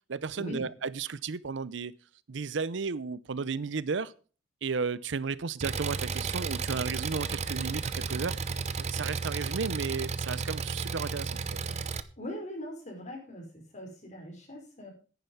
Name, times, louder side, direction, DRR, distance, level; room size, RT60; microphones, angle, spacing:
voice 1, 0.1-1.9 2.3-4.1 4.6-11.6, right 5 dB, 70° right, 0.6 m, -34 dB
Engine, 5.6-12.0, right 5 dB, 35° right, 0.7 m, -33 dB
voice 2, 12.2-14.9, equal, 40° left, 5.3 m, -41 dB
10.5 x 10.0 x 5.4 m
head